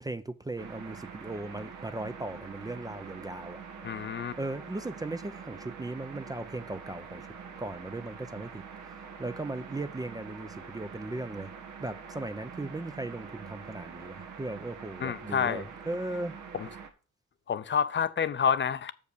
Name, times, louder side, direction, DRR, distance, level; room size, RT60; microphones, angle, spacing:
voice 1, 0.0-3.6 4.4-7.3 7.6-8.6 9.2-11.5 11.8-16.4, right 2 dB, 15° right, 0.5 m, -37 dB
sound 1, 0.6-16.9, right 6 dB, 80° right, 1.5 m, -45 dB
voice 2, 3.8-4.3 15.0-15.6 16.5-16.7 17.5-18.9, left 7 dB, 40° left, 0.6 m, -28 dB
6.8 x 5.3 x 6.6 m
cardioid pair, 90°, 30 cm